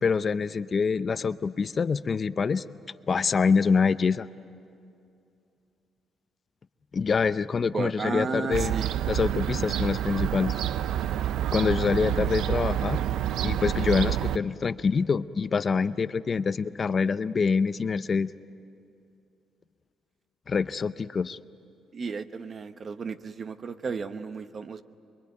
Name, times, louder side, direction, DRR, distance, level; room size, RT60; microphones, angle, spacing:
voice 1, 0.0-2.6 3.1-4.3 6.9-8.7 9.1-10.6 11.5-13.0 13.4-18.3 20.5-21.4, left 5 dB, 40° left, 14 dB, 0.6 m, -25 dB
voice 2, 7.7-8.9 21.9-24.8, right 5 dB, 45° right, 10 dB, 1.0 m, -33 dB
Fowl / Gull seagull, 8.5-14.4, right 11 dB, 85° right, 0.6 m, -28 dB
26.5 x 22.0 x 9.5 m, 2.6 s
cardioid pair, 90°, 0 cm